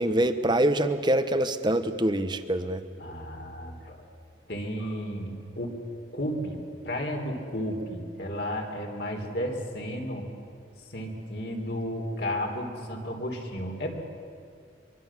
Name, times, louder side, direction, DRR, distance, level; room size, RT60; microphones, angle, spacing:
voice 1, 0.0-2.8, right 1 dB, 25° right, 10 dB, 1.0 m, -25 dB
voice 2, 3.0-4.0 4.5-5.8 6.1-6.6 6.8-10.3 10.9-14.0, equal, 60° left, 1 dB, 3.5 m, -33 dB
24.0 x 24.0 x 7.3 m, 2.4 s
head